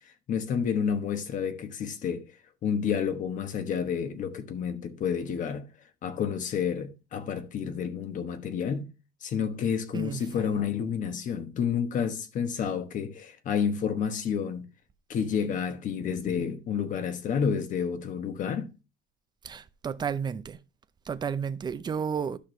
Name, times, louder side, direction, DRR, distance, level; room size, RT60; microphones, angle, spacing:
voice 1, 0.3-2.2 2.6-5.7 6.0-8.9 9.2-14.7 15.1-18.7, left 7 dB, 45° left, 1.1 m, -30 dB
voice 2, 9.9-10.6 19.4-20.6 21.0-22.4, right 7 dB, 25° right, 0.6 m, -32 dB
11.5 x 6.1 x 3.2 m
cardioid pair, 145°, 19 cm